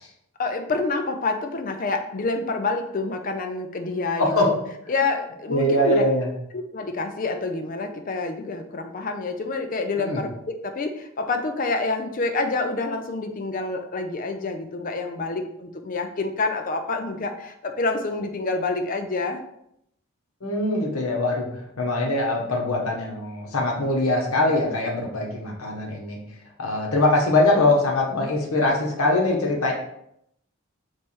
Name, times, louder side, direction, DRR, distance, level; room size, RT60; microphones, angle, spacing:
voice 1, 0.4-4.5 4.9-6.0 6.5-19.4, left 3 dB, 40° left, 5 dB, 0.4 m, -27 dB
voice 2, 5.5-6.3 10.0-10.2 20.4-26.2 26.6-29.7, left 2 dB, 75° left, -1 dB, 1.0 m, -22 dB
3.3 x 3.1 x 4.3 m, 0.76 s
head